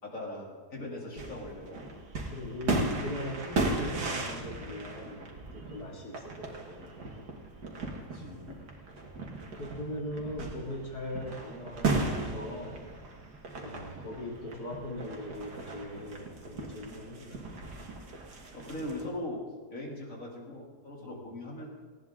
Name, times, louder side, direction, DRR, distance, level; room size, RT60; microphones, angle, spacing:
voice 1, 0.0-1.8 8.0-8.6 18.5-21.7, left 1 dB, 50° left, -2 dB, 3.3 m, -40 dB
voice 2, 1.0-1.4 2.3-7.0 9.6-12.8 13.5-17.4 21.0-21.3, left 1 dB, 65° left, -1 dB, 3.1 m, -40 dB
sound 1, 1.2-19.1, right 3 dB, 70° right, 2.2 m, -36 dB
18.5 x 16.5 x 3.7 m, 1.4 s
omnidirectional pair, 1.8 m